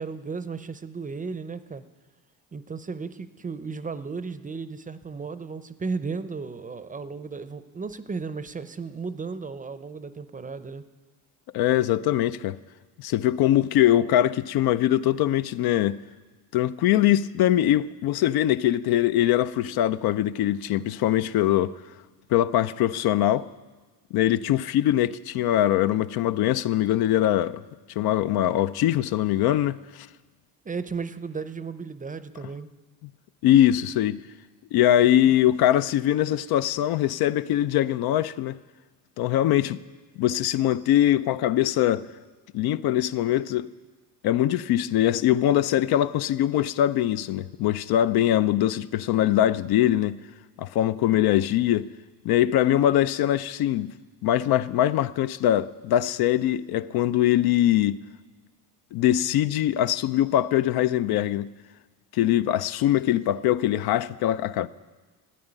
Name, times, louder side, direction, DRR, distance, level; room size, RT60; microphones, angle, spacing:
voice 1, 0.0-1.8 2.5-10.9 30.6-32.7, right 4 dB, 20° right, 0.6 m, -34 dB
voice 2, 11.5-12.6 13.0-16.0 16.5-21.8 22.3-23.5 24.1-27.6 28.0-30.1 33.4-34.2 34.7-38.6 39.2-39.8 40.2-42.1 42.5-43.7 44.2-50.2 50.6-51.9 52.2-53.9 54.2-58.0 58.9-61.5 62.1-64.7, left 12 dB, 65° left, 0.5 m, -22 dB
13.0 x 8.9 x 9.8 m
cardioid pair, 105°, 39 cm